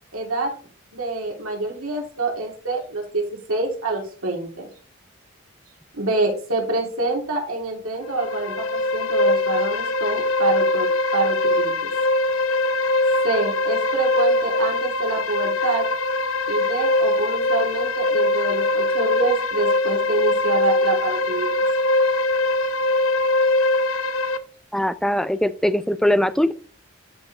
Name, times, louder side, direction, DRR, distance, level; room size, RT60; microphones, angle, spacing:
voice 1, 0.1-0.5 0.9-4.7 5.9-10.9 11.1-11.9 13.2-15.9 16.5-21.5, right 3 dB, 90° right, 0 dB, 3.0 m, -26 dB
sound 1, 8.0-24.4, left 2 dB, 80° left, 0.8 m, -22 dB
voice 2, 24.7-26.5, left 1 dB, ahead, 13 dB, 0.4 m, -21 dB
12.5 x 4.7 x 3.3 m, 0.40 s
head